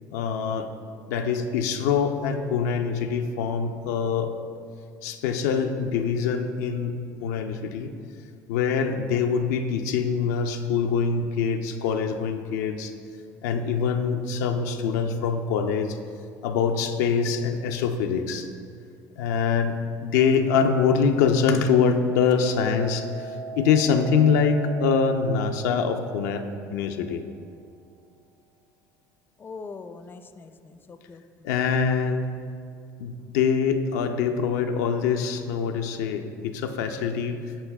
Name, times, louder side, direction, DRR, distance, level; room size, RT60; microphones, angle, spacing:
voice 1, 0.1-0.7 1.1-4.3 5.0-7.9 8.5-12.9 13.4-16.0 16.4-18.5 19.2-26.4 26.7-27.2 31.4-32.3 33.0-37.4, left 6 dB, 85° left, 5 dB, 0.4 m, -24 dB
Hammer, 22.3-28.5, right 5 dB, 70° right, 0.6 m, -41 dB
voice 2, 29.4-31.5, left 4 dB, 25° left, 8 dB, 0.4 m, -42 dB
12.0 x 4.1 x 2.2 m, 2.4 s
supercardioid pair, 85°, 9 cm